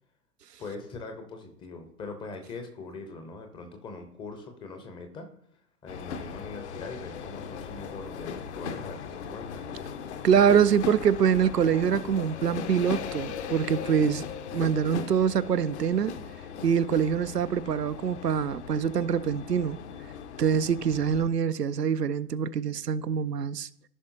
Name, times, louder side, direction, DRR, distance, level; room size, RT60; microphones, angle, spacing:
voice 1, 0.6-5.3 5.8-9.8, left 3 dB, 10° left, 0.7 m, -42 dB
sound 1, 5.9-21.3, left 7 dB, 45° left, 0.8 m, -38 dB
voice 2, 10.2-14.2 14.5-16.1 16.6-19.8 20.4-23.7, right 7 dB, 85° right, 0.5 m, -24 dB
14.5 x 5.5 x 2.7 m
figure-of-eight pair, 110°, 47 cm